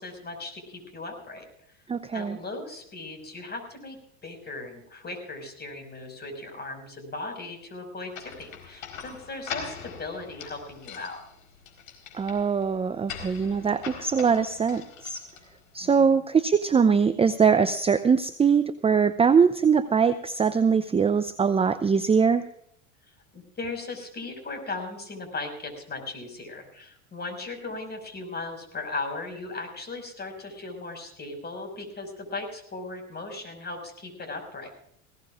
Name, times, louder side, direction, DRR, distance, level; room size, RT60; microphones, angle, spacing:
voice 1, 0.0-1.8 2.1-11.2 15.8-16.2 23.3-34.7, left 3 dB, 25° left, 5 dB, 5.7 m, -37 dB
voice 2, 1.9-2.4 12.1-15.2 15.7-22.4, right 6 dB, 15° right, 11 dB, 0.6 m, -22 dB
sound 1, 8.1-15.8, left 7 dB, 85° left, 4.3 m, -42 dB
20.0 x 17.5 x 2.5 m, 0.70 s
hypercardioid pair, 95°, 39 cm